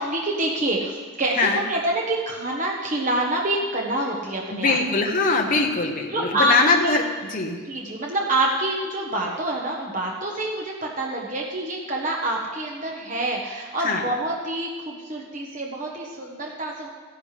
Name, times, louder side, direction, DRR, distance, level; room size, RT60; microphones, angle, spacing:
voice 1, 0.0-4.8 6.1-6.5 6.8-6.9 7.6-16.9, right 1 dB, 40° right, -1 dB, 1.2 m, -26 dB
voice 2, 4.5-7.6 13.8-14.0, left 3 dB, 40° left, 1 dB, 0.9 m, -22 dB
15.0 x 10.5 x 3.3 m, 1.5 s
head